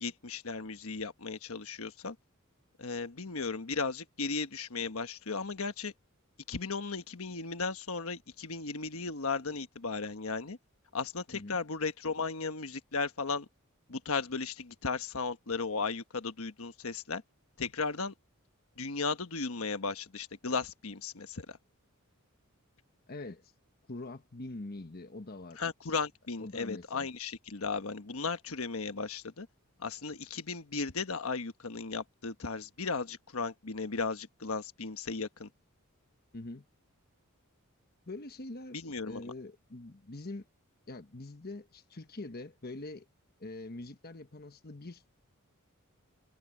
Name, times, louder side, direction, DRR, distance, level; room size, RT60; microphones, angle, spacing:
voice 1, 0.0-2.2 2.8-5.9 6.5-10.6 10.9-13.5 13.9-17.2 17.6-18.1 18.8-21.6 25.6-29.5 29.8-35.5 38.7-39.3, left 4 dB, 75° left, 1.3 m, -36 dB
voice 2, 23.1-23.5 23.9-25.6 26.4-27.1 36.3-36.7 38.1-38.8 39.1-40.4 40.9-43.1 43.4-45.1, left 2 dB, 45° left, 1.2 m, -44 dB
head